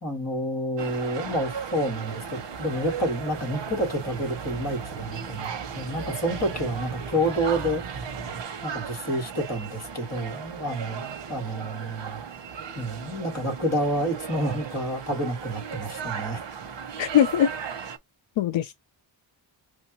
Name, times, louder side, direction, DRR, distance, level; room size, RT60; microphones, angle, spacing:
voice 1, 0.0-5.5 5.7-7.8 8.6-12.2 12.8-16.4, equal, 35° left, 2.2 m, -29 dB
sound 1, 0.8-18.0, right 7 dB, 65° right, 0.9 m, -37 dB
sound 2, 2.1-8.4, right 4 dB, 45° right, 1.0 m, -41 dB
voice 2, 17.0-17.5 18.4-18.7, left 10 dB, 75° left, 0.5 m, -21 dB
6.1 x 2.5 x 2.9 m
wide cardioid pair, 165°, 46 cm